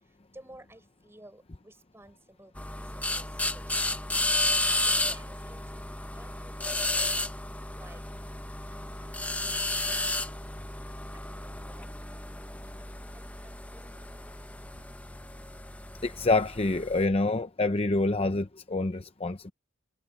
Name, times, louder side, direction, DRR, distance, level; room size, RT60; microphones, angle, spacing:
voice 1, 0.3-3.8 5.1-7.2 7.8-8.0 8.7-9.2 9.9-10.3 11.1-11.9 12.6-13.9, right 1 dB, 10° right, 4.5 m, -55 dB
sound 1, 2.6-17.0, left 2 dB, 5° left, 1.0 m, -33 dB
voice 2, 16.0-19.5, left 2 dB, 30° left, 0.7 m, -27 dB
head